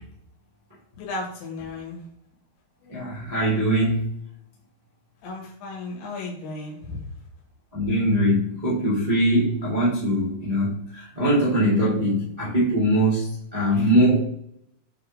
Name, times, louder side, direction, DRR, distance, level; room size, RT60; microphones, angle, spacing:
voice 1, 1.0-2.0 2.8-3.0 5.2-7.1, left 3 dB, 85° left, -2 dB, 4.1 m, -35 dB
voice 2, 2.9-4.0 7.7-13.3 13.5-14.2, equal, 75° right, -8 dB, 0.3 m, -22 dB
8.4 x 4.0 x 3.6 m, 0.71 s
omnidirectional pair, 5.1 m